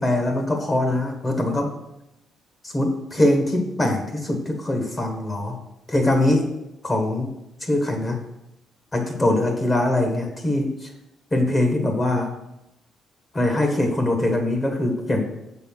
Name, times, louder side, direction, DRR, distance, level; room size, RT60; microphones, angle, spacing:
voice 1, 0.0-1.7 2.6-5.6 5.9-6.5 6.8-7.3 7.7-8.2 8.9-10.9 11.3-12.3 13.3-15.3, left 1 dB, 25° left, 4 dB, 1.4 m, -22 dB
6.8 x 4.2 x 5.6 m, 0.87 s
cardioid pair, 90°, 0 cm